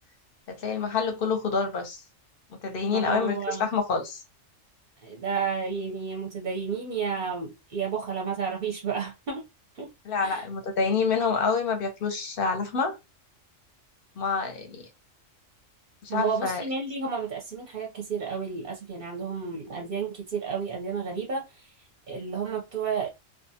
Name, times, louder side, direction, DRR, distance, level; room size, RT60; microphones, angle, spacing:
voice 1, 0.5-2.0 2.6-4.2 10.0-13.0 14.2-14.8 16.0-16.6, left 5 dB, 55° left, 0.8 m, -27 dB
voice 2, 2.9-3.7 5.0-9.4 9.8-9.9 10.2-10.4 16.1-21.7 22.1-23.1, right 5 dB, 50° right, 0.7 m, -31 dB
2.4 x 2.3 x 2.7 m
omnidirectional pair, 1.3 m